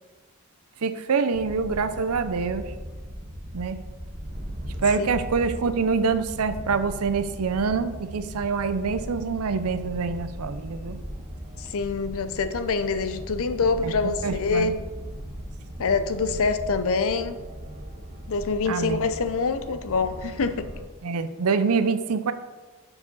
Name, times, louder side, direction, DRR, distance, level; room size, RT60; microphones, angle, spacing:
voice 1, 0.8-2.7 3.5-3.8 4.8-11.0 13.8-13.9 14.2-14.7 18.7-19.0 21.0-22.3, right 5 dB, 70° right, 11 dB, 0.6 m, -25 dB
sound 1, 1.3-20.8, equal, 40° right, 1.2 m, -38 dB
voice 2, 11.6-14.8 15.8-17.4 18.3-20.7, left 4 dB, 65° left, 11 dB, 0.6 m, -25 dB
6.7 x 4.9 x 5.4 m, 1.3 s
head